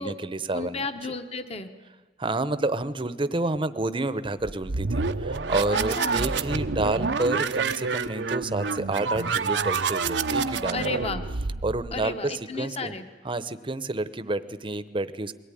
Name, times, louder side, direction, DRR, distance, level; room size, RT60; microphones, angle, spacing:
voice 1, 0.0-0.8 2.2-11.0 11.6-12.1 12.6-12.9 13.2-15.3, right 2 dB, 30° right, 14 dB, 0.9 m, -29 dB
voice 2, 0.5-1.7 5.7-6.2 10.7-11.2 11.9-13.1, left 3 dB, 35° left, 9 dB, 1.2 m, -33 dB
sound 1, 4.4-12.1, right 4 dB, 85° right, 0.9 m, -28 dB
22.0 x 18.0 x 10.0 m, 1.3 s
head